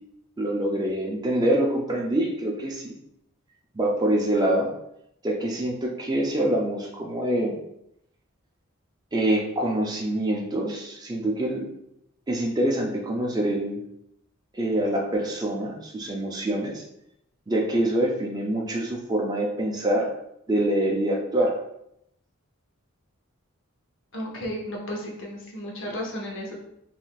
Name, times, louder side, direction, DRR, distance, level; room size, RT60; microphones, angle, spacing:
voice 1, 0.4-2.9 3.7-4.7 5.2-7.6 9.1-11.7 12.3-13.8 14.5-16.8 17.5-20.1 20.5-21.6, right 1 dB, 20° right, -1 dB, 0.4 m, -25 dB
voice 2, 24.1-26.5, equal, 60° left, -1 dB, 0.8 m, -33 dB
3.6 x 2.5 x 2.4 m, 0.78 s
head